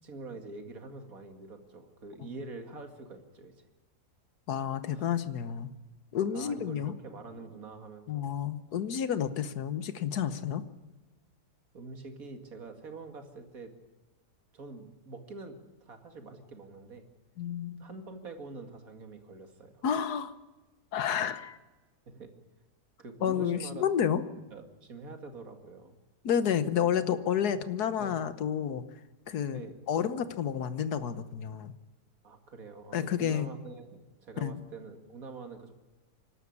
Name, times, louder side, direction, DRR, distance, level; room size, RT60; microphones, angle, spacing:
voice 1, 0.0-3.7 4.9-5.1 6.2-8.3 11.7-13.7 14.5-17.1 17.8-19.8 22.1-22.3 23.0-23.8 24.5-26.0 26.8-26.9 28.0-28.2 29.5-29.8 32.2-35.7, right 3 dB, 55° right, 5 dB, 2.6 m, -45 dB
voice 2, 4.5-5.7 6.1-6.9 8.1-10.6 17.4-17.8 19.8-20.3 20.9-21.6 23.2-24.2 26.2-28.8 29.3-29.6 29.9-31.7 32.9-33.5 34.4-34.5, left 8 dB, 70° left, 13 dB, 1.6 m, -30 dB
26.0 x 12.5 x 9.7 m, 1.1 s
omnidirectional pair, 1.8 m